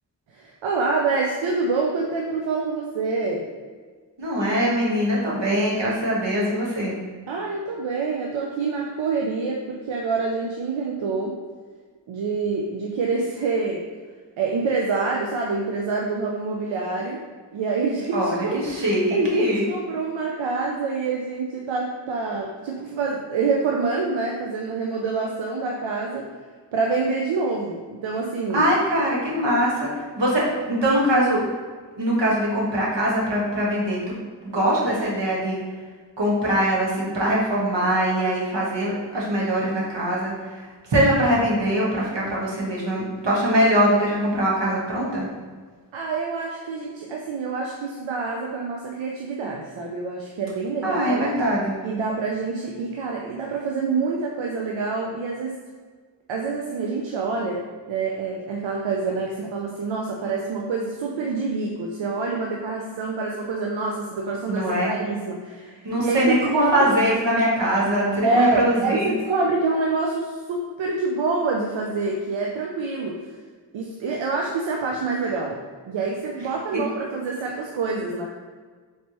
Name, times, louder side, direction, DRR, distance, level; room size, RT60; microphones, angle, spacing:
voice 1, 0.3-3.5 7.3-11.4 12.1-13.8 14.4-17.2 17.5-18.6 19.1-26.3 26.7-28.7 45.9-51.3 51.8-55.6 56.3-66.9 68.2-73.2 73.7-78.3, right 3 dB, 85° right, -1 dB, 0.5 m, -26 dB
voice 2, 4.2-7.0 18.1-19.7 28.5-31.4 31.9-34.1 34.4-35.6 36.2-45.3 50.8-51.8 64.5-64.9 65.8-69.1 76.7-76.8, equal, 70° right, -5 dB, 1.3 m, -22 dB
4.3 x 3.3 x 2.9 m, 1.5 s
cardioid pair, 40°, 45 cm